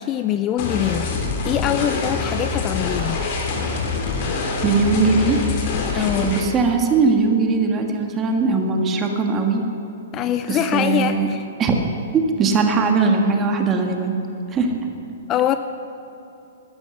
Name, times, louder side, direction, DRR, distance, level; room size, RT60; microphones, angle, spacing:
voice 1, 0.0-3.3 5.9-6.4 10.1-11.5 15.3-15.6, left 10 dB, 30° left, 10 dB, 0.5 m, -23 dB
sound 1, 0.6-6.4, left 4 dB, 45° left, 2.9 m, -25 dB
voice 2, 4.6-5.4 5.9-9.6 10.5-11.3 11.6-11.8 12.1-14.2 14.5-14.8, right 4 dB, 25° right, 3 dB, 1.6 m, -20 dB
13.0 x 10.5 x 6.7 m, 2.9 s
hypercardioid pair, 130°, 0 cm